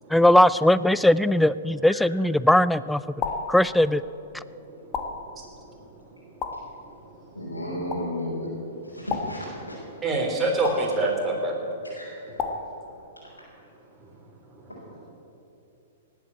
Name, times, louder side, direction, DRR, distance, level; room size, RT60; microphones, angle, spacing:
voice 1, 0.1-3.0 3.5-4.0, left 1 dB, 5° left, 17 dB, 0.3 m, -19 dB
sound 1, 3.2-3.6 4.9-5.3 6.4-6.8 7.9-8.2 9.1-9.5 10.6-11.0 12.4-12.8, left 5 dB, 30° left, 1.4 m, -31 dB
voice 2, 7.3-8.5 8.8-9.8 10.6-10.9 11.9-12.4, equal, 90° left, -7 dB, 4.4 m, -34 dB
voice 3, 10.0-11.6, right 2 dB, 15° right, -1 dB, 3.3 m, -24 dB
18.0 x 8.2 x 8.4 m, 2.8 s
figure-of-eight pair, 110°, 0 cm